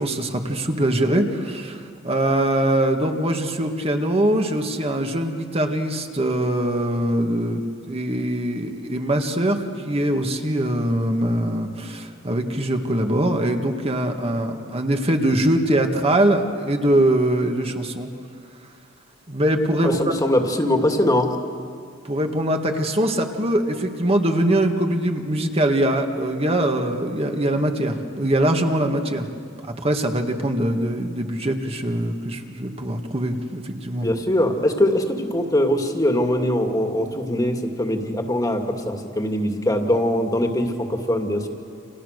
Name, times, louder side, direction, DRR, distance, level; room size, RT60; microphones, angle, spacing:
voice 1, 0.0-18.1 19.3-20.0 22.0-29.3 29.6-34.1, right 1 dB, 30° right, 4 dB, 2.0 m, -22 dB
voice 2, 19.8-21.3 34.0-41.5, left 1 dB, 20° left, 3 dB, 2.3 m, -22 dB
29.5 x 28.0 x 6.7 m, 2.2 s
head